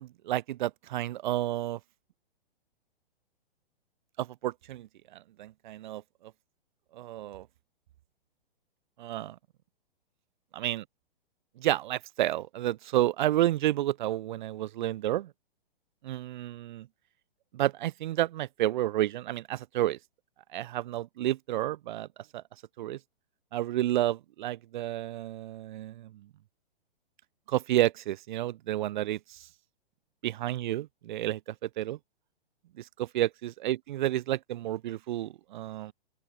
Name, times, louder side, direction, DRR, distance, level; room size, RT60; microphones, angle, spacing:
voice 1, 0.0-1.8 4.2-4.9 5.4-6.0 6.9-7.5 9.0-9.4 10.6-10.8 11.6-15.3 16.0-16.9 17.5-20.0 20.5-22.1 22.3-22.4 22.8-23.0 23.5-26.1 27.5-29.4 30.2-32.0 32.8-35.9, right 14 dB, 55° right, 0.5 m, -30 dB
open air
figure-of-eight pair, 115°, 30 cm